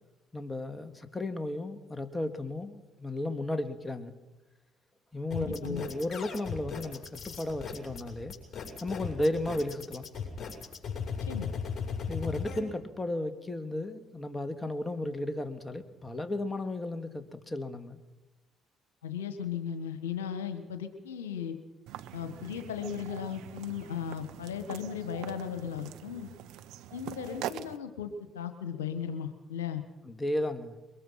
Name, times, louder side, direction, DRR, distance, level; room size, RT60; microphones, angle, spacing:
voice 1, 0.3-4.1 5.1-8.3 8.8-10.1 12.1-18.0 30.1-30.8, left 1 dB, 20° left, 8 dB, 2.4 m, -34 dB
voice 2, 5.3-5.9 11.2-11.5 19.0-21.6 22.1-26.3 26.9-29.8, left 8 dB, 90° left, 9 dB, 1.5 m, -36 dB
sound 1, 5.3-12.6, left 6 dB, 45° left, 6.8 m, -37 dB
sound 2, 21.9-27.8, right 12 dB, 70° right, 0.9 m, -43 dB
23.0 x 21.5 x 5.9 m, 1.1 s
hypercardioid pair, 55°, 0 cm